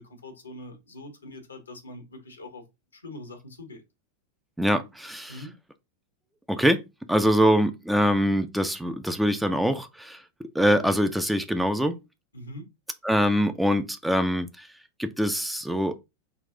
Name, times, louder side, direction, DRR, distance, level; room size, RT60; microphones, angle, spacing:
voice 1, 0.0-2.6 2.9-3.8 5.3-5.5 12.3-12.7, left 1 dB, 75° left, 1.1 m, -43 dB
voice 2, 4.6-5.4 6.5-6.8 7.1-10.2 10.5-12.0 13.0-14.7 15.0-16.0, equal, 5° right, 0.4 m, -24 dB
4.0 x 2.4 x 3.8 m
figure-of-eight pair, 90°, 0 cm